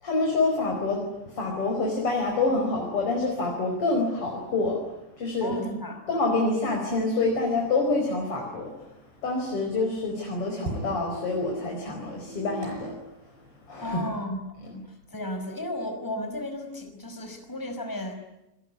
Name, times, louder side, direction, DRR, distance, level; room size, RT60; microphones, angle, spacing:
voice 1, 0.0-4.8 5.2-5.6 6.1-8.9 9.2-12.9 13.7-14.0, left 3 dB, 35° left, 1 dB, 5.5 m, -27 dB
voice 2, 5.4-6.1 13.8-14.4 14.6-18.1, left 1 dB, 5° left, 6 dB, 4.7 m, -34 dB
sound 1, 8.7-14.0, right 2 dB, 85° right, 9.7 m, -39 dB
28.0 x 22.0 x 9.6 m, 0.89 s
omnidirectional pair, 4.6 m